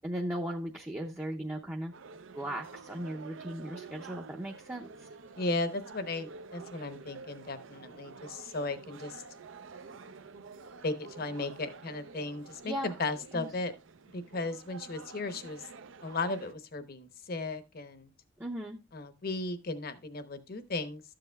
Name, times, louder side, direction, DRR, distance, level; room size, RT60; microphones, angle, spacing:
voice 1, 0.0-1.9 2.3-5.1 12.6-12.9 13.3-13.5 18.4-18.8, right 1 dB, 10° right, 0 dB, 0.6 m, -37 dB
sound 1, 1.9-16.5, right 4 dB, 80° right, 0.6 m, -49 dB
voice 2, 5.4-9.2 10.8-13.7 14.1-15.6 16.0-18.1 18.9-21.0, left 2 dB, 50° left, 11 dB, 0.9 m, -36 dB
12.5 x 7.7 x 2.3 m, 0.24 s
head